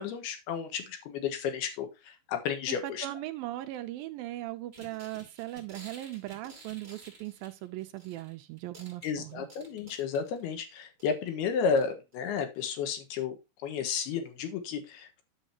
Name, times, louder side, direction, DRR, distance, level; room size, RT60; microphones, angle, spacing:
voice 1, 0.0-3.1 9.0-13.4 13.6-15.2, left 6 dB, 85° left, 3.4 m, -32 dB
voice 2, 2.7-9.5, right 16 dB, 80° right, 2.2 m, -39 dB
sound 1, 4.7-8.3 8.6-10.5 11.0-11.3 11.8-11.9 12.1-12.2, right 3 dB, 20° right, 2.4 m, -52 dB
10.0 x 7.4 x 2.8 m
omnidirectional pair, 4.4 m